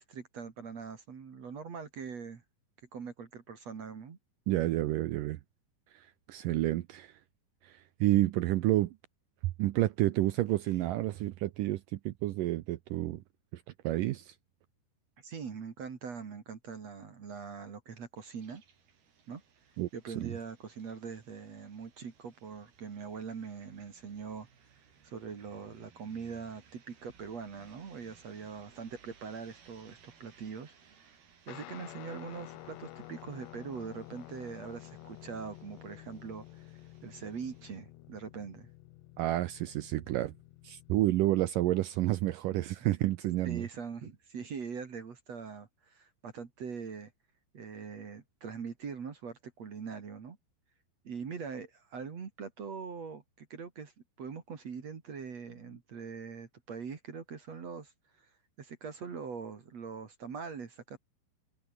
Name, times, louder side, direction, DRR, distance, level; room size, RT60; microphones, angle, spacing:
voice 1, 0.0-2.4 2.9-4.2 15.2-18.6 19.3-19.4 19.9-24.5 25.0-31.1 31.5-38.7 42.8-42.9 43.4-47.1 47.5-50.4 51.0-53.9 54.2-57.9 58.2-58.3 58.6-61.0, right 6 dB, 45° right, 3.3 m, -42 dB
voice 2, 4.5-5.4 5.9-7.1 7.6-8.9 9.6-13.2 13.5-14.3 19.8-19.9 20.2-20.3 39.2-40.3 40.6-43.7, right 16 dB, 80° right, 1.9 m, -30 dB
sound 1, 18.2-37.8, right 7 dB, 65° right, 5.9 m, -63 dB
Guitar, 31.5-41.2, left 17 dB, 85° left, 3.1 m, -50 dB
omnidirectional pair, 4.9 m